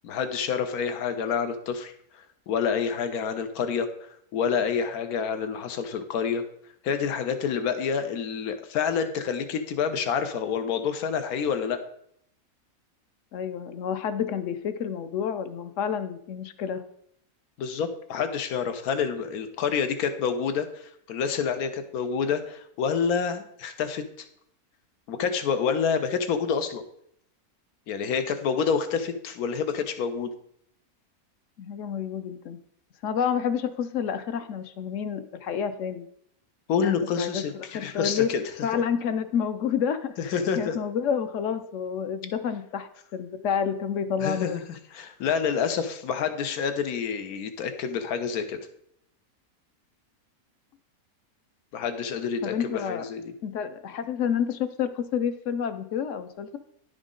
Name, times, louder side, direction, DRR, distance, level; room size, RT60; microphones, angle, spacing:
voice 1, 0.0-6.4 6.8-11.8 17.6-24.3 25.1-26.8 27.9-30.3 36.7-38.4 38.7-38.8 40.3-40.8 44.2-48.6 51.7-53.3, left 6 dB, 90° left, 9 dB, 1.2 m, -28 dB
voice 2, 13.3-16.8 31.6-32.6 33.0-36.1 36.8-38.3 38.6-44.6 52.4-53.1 53.4-56.6, left 7 dB, 65° left, 10 dB, 0.9 m, -29 dB
11.0 x 5.1 x 3.7 m, 0.71 s
omnidirectional pair, 1.5 m